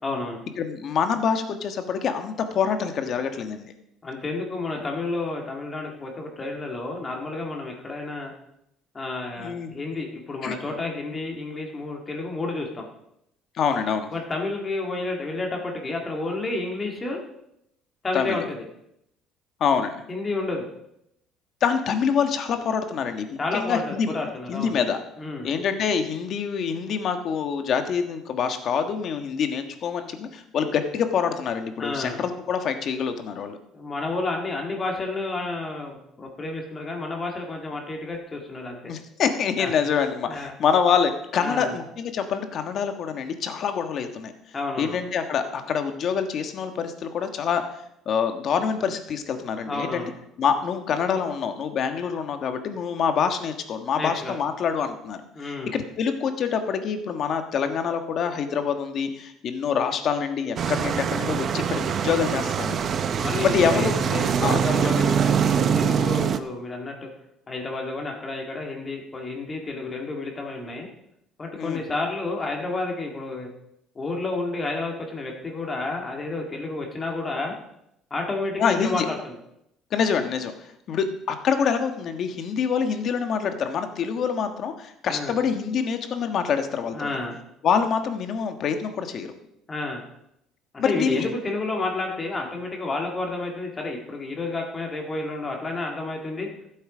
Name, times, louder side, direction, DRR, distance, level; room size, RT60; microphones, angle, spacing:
voice 1, 0.0-0.4 4.0-8.3 8.9-12.9 14.1-17.2 18.0-18.6 20.1-20.7 23.4-24.8 25.2-25.5 31.8-32.2 33.7-38.8 39.6-39.7 40.3-40.5 41.4-41.8 44.5-45.0 49.6-50.1 54.0-54.4 55.4-55.7 63.2-67.0 67.5-70.9 71.4-73.5 74.0-77.6 78.1-79.4 85.0-85.3 86.9-87.4 89.7-90.0 90.7-96.5, left 3 dB, 20° left, 1 dB, 2.0 m, -30 dB
voice 2, 0.6-3.7 9.4-9.7 10.4-10.5 13.6-14.1 18.1-18.4 19.6-20.0 21.6-24.2 24.5-25.0 25.4-33.6 38.9-44.3 44.8-47.6 48.0-50.1 50.4-62.9 63.4-63.9 64.4-64.6 71.6-71.8 78.6-79.1 79.9-80.5 80.9-87.2 87.6-89.3 90.8-91.3, left 6 dB, 45° left, 7 dB, 1.4 m, -26 dB
sound 1, 60.6-66.4, right 7 dB, 40° right, 0.7 m, -23 dB
14.0 x 8.1 x 5.0 m, 0.80 s
cardioid pair, 140°, 0 cm